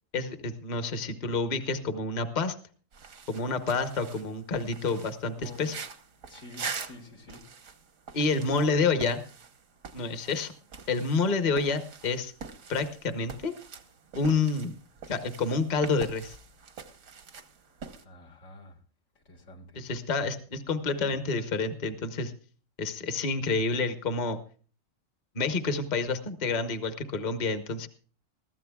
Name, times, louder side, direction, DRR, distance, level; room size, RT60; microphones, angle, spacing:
voice 1, 0.1-2.5 3.3-5.8 8.1-9.2 9.9-10.5 10.9-12.3 12.7-13.5 14.2-14.7 15.1-16.4 19.7-22.3 22.8-24.4 25.3-27.9, left 4 dB, 35° left, 8 dB, 1.0 m, -28 dB
sound 1, 2.9-18.0, right 5 dB, 85° right, 1.6 m, -44 dB
voice 2, 5.3-5.8 6.3-7.4 18.0-18.8 19.3-19.8 21.0-21.2, left 3 dB, 80° left, 1 dB, 2.3 m, -48 dB
21.5 x 15.0 x 2.3 m, 0.41 s
omnidirectional pair, 1.4 m